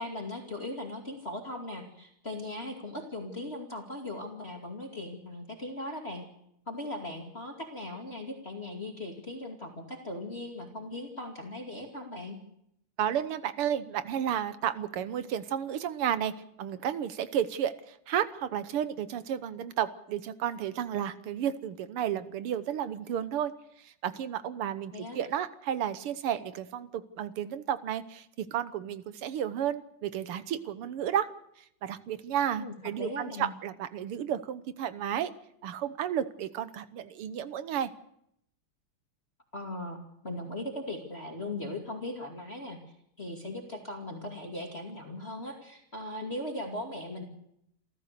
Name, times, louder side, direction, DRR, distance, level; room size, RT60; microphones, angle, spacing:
voice 1, 0.0-6.3 6.7-12.4 24.9-25.3 32.6-33.5 39.5-42.8 43.2-47.2, left 1 dB, 30° left, 1 dB, 2.6 m, -39 dB
voice 2, 13.0-16.3 16.6-23.5 23.8-31.3 31.6-35.3 35.6-37.9, right 9 dB, 85° right, 13 dB, 1.9 m, -32 dB
28.5 x 14.0 x 6.7 m, 0.74 s
omnidirectional pair, 2.4 m